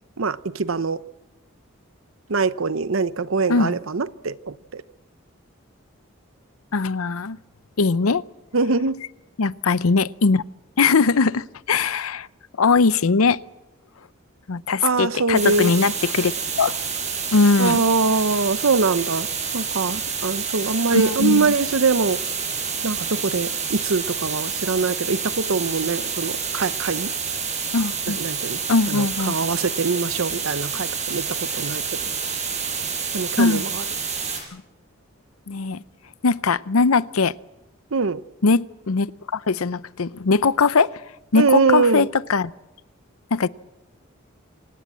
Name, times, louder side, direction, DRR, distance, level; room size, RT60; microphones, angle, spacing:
voice 1, 0.2-1.0 2.3-4.8 8.5-9.0 14.8-15.7 17.6-19.3 19.5-22.2 22.8-27.1 28.1-28.6 28.9-31.8 33.1-33.8 37.9-38.2 41.4-42.1, right 4 dB, 75° right, 15 dB, 0.8 m, -23 dB
voice 2, 6.7-7.4 7.8-8.2 9.4-10.4 10.8-12.3 12.6-13.4 14.5-16.3 16.6-16.7 17.3-17.8 20.9-21.5 27.7-28.2 28.7-29.3 33.4-33.6 34.5-34.6 35.5-35.8 36.2-37.3 38.4-38.6 38.9-40.9 41.3-42.5 43.3-43.5, left 4 dB, 90° left, 17 dB, 0.7 m, -20 dB
sound 1, 15.3-34.4, right 6 dB, 35° right, 6.1 m, -28 dB
26.0 x 18.0 x 7.6 m, 0.97 s
head